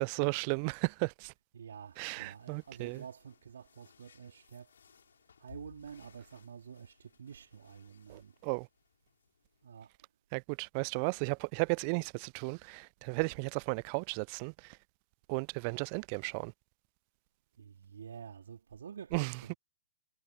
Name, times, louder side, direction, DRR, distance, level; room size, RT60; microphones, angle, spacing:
voice 1, 0.0-1.3 2.0-3.0 8.1-8.7 10.3-14.8 15.3-16.5 19.1-19.3, right 36 dB, 35° right, 0.5 m, -34 dB
voice 2, 1.5-5.1 5.4-8.4 9.6-10.1 17.5-19.6, right 7 dB, 65° right, 3.3 m, -49 dB
sound 1, 1.7-9.9, left 7 dB, 65° left, 6.2 m, -62 dB
figure-of-eight pair, 115°, 0 cm